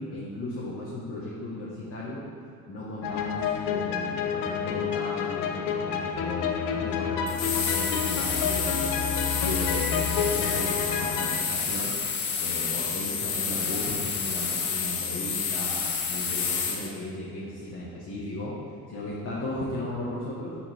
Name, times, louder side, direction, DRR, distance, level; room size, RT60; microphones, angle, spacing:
voice 1, 0.0-2.2 2.7-11.9 12.4-15.8 16.1-18.6 18.9-20.6, left 1 dB, 35° left, -6 dB, 1.5 m, -36 dB
sound 1, 3.0-11.3, left 7 dB, 50° left, 0.8 m, -29 dB
sound 2, 7.3-16.9, left 6 dB, 70° left, 1.1 m, -29 dB
7.0 x 5.8 x 4.5 m, 2.3 s
figure-of-eight pair, 55°, 44 cm